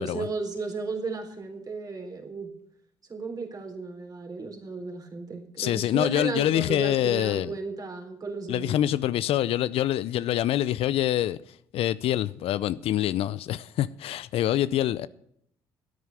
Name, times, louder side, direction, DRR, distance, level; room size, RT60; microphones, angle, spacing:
voice 1, 0.0-2.5 3.1-8.8, right 4 dB, 35° right, 4.0 m, -34 dB
voice 2, 5.6-7.5 8.5-11.4 11.7-15.1, left 12 dB, 65° left, 0.6 m, -25 dB
12.5 x 9.5 x 6.9 m
hypercardioid pair, 60°, 11 cm